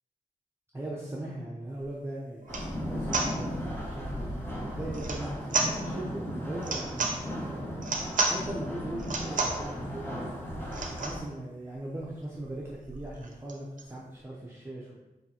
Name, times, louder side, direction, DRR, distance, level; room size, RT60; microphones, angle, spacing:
voice 1, 0.7-10.4 10.7-15.0, right 1 dB, 15° right, -5 dB, 0.7 m, -39 dB
sound 1, 1.8-1.9 2.4-2.7 3.1-3.3 4.9-5.2 5.5-5.7 6.6-7.2 7.8-8.4 9.0-9.6 10.7-11.2 11.7-11.8 12.0-12.1 12.4-13.9, right 3 dB, 60° right, 0.6 m, -31 dB
sound 2, 2.5-11.2, equal, 15° left, 1.1 m, -36 dB
3.8 x 3.7 x 2.9 m, 1.0 s
cardioid pair, 70°, 15 cm